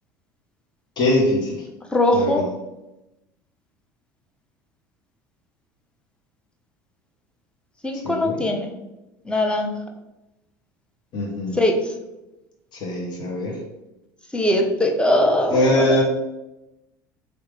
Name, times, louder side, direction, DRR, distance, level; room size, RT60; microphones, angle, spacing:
voice 1, 1.0-1.7 2.1-2.5 8.0-8.5 11.1-11.6 12.7-13.6 15.5-16.0, left 1 dB, 40° left, -1 dB, 0.7 m, -22 dB
voice 2, 1.9-2.4 7.8-8.7 9.2-9.7 11.5-11.9 14.3-16.0, left 1 dB, 10° left, 2 dB, 0.5 m, -21 dB
3.0 x 2.0 x 3.1 m, 0.96 s
figure-of-eight pair, 65°, 11 cm